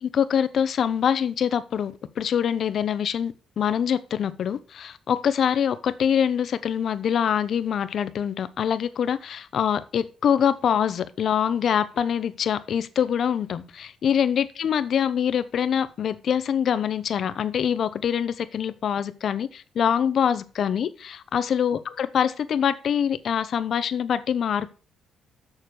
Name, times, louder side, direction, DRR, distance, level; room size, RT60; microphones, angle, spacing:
voice 1, 0.0-24.7, left 8 dB, 60° left, 0.8 m, -24 dB
7.2 x 6.8 x 6.2 m
cardioid pair, 90°, 0 cm